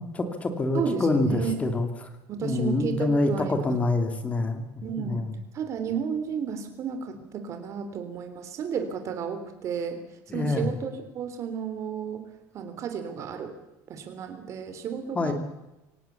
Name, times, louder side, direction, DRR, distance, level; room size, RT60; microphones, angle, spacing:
voice 1, 0.0-2.1 2.4-4.6 5.0-5.3 10.3-10.7 15.1-15.3, left 2 dB, 15° left, 7 dB, 2.5 m, -26 dB
voice 2, 0.7-1.6 2.3-3.7 4.8-5.3 5.5-10.0 10.3-12.3 12.5-13.5 13.9-15.3, right 7 dB, 40° right, 8 dB, 3.6 m, -32 dB
24.0 x 18.0 x 7.1 m, 0.98 s
cardioid pair, 160°, 8 cm